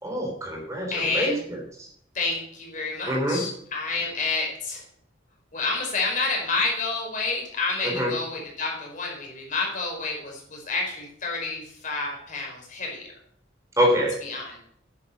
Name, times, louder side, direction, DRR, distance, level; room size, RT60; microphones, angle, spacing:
voice 1, 0.0-1.9 3.1-3.4 7.8-8.1 13.8-14.1, equal, 15° right, -1 dB, 3.4 m, -25 dB
voice 2, 0.9-1.4 2.1-4.8 5.5-13.0 14.2-14.6, left 3 dB, 40° left, 0 dB, 4.8 m, -29 dB
11.0 x 9.5 x 6.4 m, 0.65 s
head